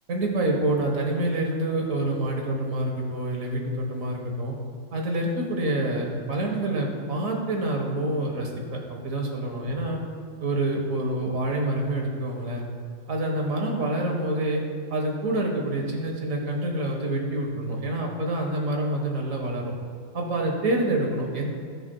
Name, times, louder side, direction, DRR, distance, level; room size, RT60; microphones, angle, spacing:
voice 1, 0.1-4.6 4.9-10.0 10.4-12.7 13.1-14.6 14.9-19.7 20.1-21.5, right 1 dB, 80° right, 1 dB, 1.8 m, -27 dB
18.0 x 7.1 x 2.3 m, 2.3 s
omnidirectional pair, 1.4 m